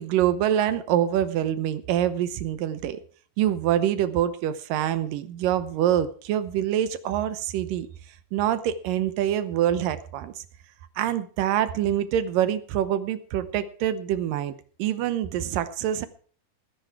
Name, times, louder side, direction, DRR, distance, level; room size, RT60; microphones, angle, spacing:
voice 1, 0.0-3.0 3.4-7.9 8.3-10.3 11.0-14.5 14.8-16.1, right 11 dB, 75° right, 12 dB, 2.5 m, -25 dB
18.5 x 10.5 x 4.7 m, 0.42 s
omnidirectional pair, 4.1 m